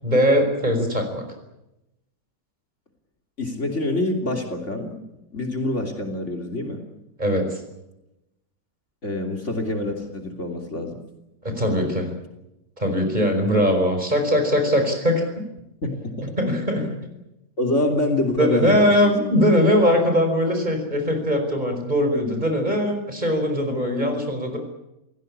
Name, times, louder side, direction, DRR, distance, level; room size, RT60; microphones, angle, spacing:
voice 1, 0.0-1.3 7.2-7.6 11.4-12.1 12.8-15.3 16.4-16.9 18.1-24.6, equal, 25° right, 5 dB, 5.2 m, -21 dB
voice 2, 3.4-5.0 5.3-6.8 9.0-11.0 15.8-16.3 16.8-17.0 17.6-19.1, left 2 dB, 40° left, 3 dB, 3.3 m, -26 dB
28.0 x 17.0 x 8.6 m, 0.91 s
omnidirectional pair, 1.8 m